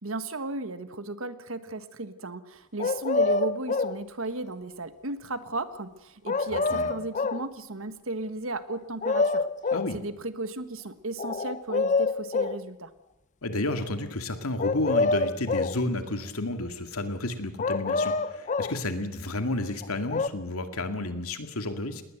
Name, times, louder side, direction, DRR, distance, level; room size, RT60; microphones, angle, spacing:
voice 1, 0.0-9.5 9.9-12.9, right 2 dB, 65° right, 12 dB, 1.5 m, -35 dB
sound 1, 2.8-4.0 6.3-7.5 8.7-9.9 11.2-12.6 14.6-15.8 17.6-18.8 19.8-20.3, left 3 dB, 35° left, 0.7 m, -26 dB
voice 2, 13.4-22.0, left 2 dB, 80° left, 7 dB, 2.3 m, -31 dB
19.5 x 19.5 x 8.0 m, 0.98 s
head